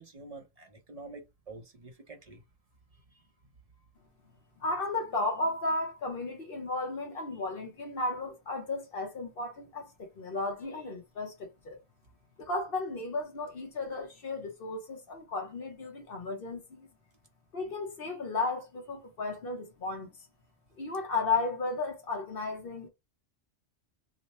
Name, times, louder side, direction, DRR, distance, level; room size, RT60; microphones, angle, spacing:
voice 1, 0.0-2.4 2.9-3.3, right 3 dB, 40° right, 0.7 m, -48 dB
voice 2, 4.6-11.8 12.4-16.9 17.5-20.1 20.8-22.9, left 3 dB, 55° left, 1.0 m, -34 dB
3.1 x 2.1 x 4.1 m
omnidirectional pair, 1.2 m